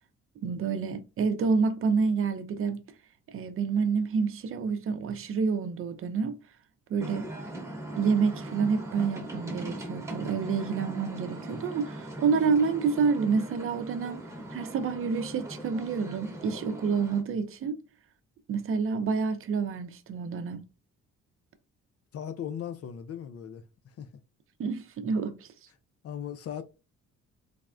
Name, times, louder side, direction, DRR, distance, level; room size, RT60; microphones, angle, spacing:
voice 1, 0.4-2.8 3.3-6.4 6.9-7.3 7.9-14.2 14.5-17.8 18.5-20.6 24.6-25.5, right 5 dB, 45° right, 0.5 m, -28 dB
sound 1, 7.0-17.2, right 1 dB, 10° right, 1.0 m, -40 dB
voice 2, 22.1-24.1 26.0-26.6, left 9 dB, 50° left, 0.4 m, -38 dB
3.4 x 2.1 x 2.4 m
cardioid pair, 90°, 30 cm